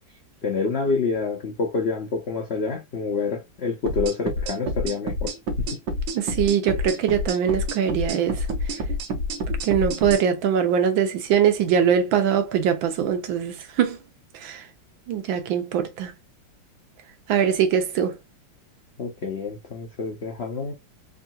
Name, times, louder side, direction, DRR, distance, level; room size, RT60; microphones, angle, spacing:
voice 1, 0.4-5.7 19.0-20.7, left 4 dB, 75° left, 0.5 m, -27 dB
sound 1, 3.9-10.2, equal, 70° right, 1.4 m, -28 dB
voice 2, 6.1-8.5 9.6-14.0 14.3-14.7 15.1-16.1 17.3-18.2, right 8 dB, 85° right, 1.5 m, -22 dB
3.7 x 2.3 x 2.6 m
omnidirectional pair, 2.1 m